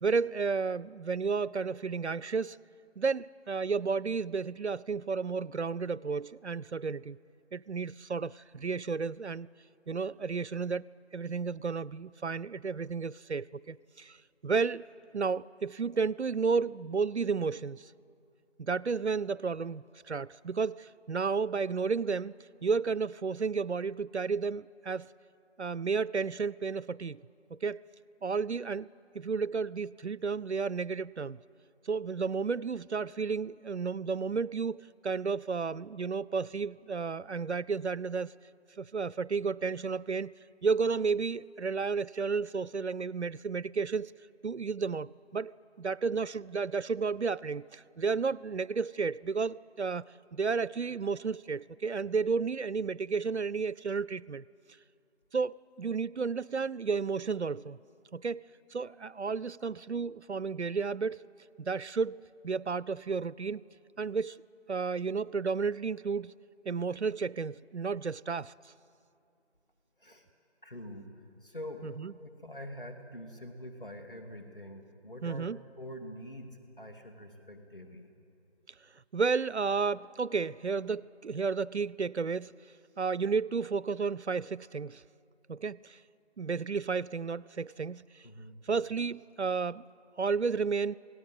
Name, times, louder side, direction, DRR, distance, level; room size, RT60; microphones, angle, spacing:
voice 1, 0.0-2.6 3.0-7.2 7.5-9.5 9.9-10.8 11.1-14.2 14.4-14.8 15.1-17.9 18.6-22.4 22.6-25.1 25.6-27.2 27.5-27.8 28.2-28.9 29.1-31.4 31.9-38.3 38.8-40.3 40.6-44.1 44.4-45.5 45.8-54.4 55.3-57.8 58.1-58.4 58.7-61.2 61.6-63.6 64.0-64.4 64.7-66.4 66.7-68.5 71.8-72.1 75.2-75.6 79.1-82.6 83.0-85.0 85.5-86.0 86.4-88.3 88.7-89.8 90.2-90.9, right 5 dB, 70° right, 0.5 m, -32 dB
voice 2, 70.6-71.1 71.4-71.9 72.2-75.5 75.8-78.0 88.2-88.6, left 1 dB, 50° left, 2.6 m, -45 dB
27.5 x 18.0 x 8.1 m
figure-of-eight pair, 180°, 35 cm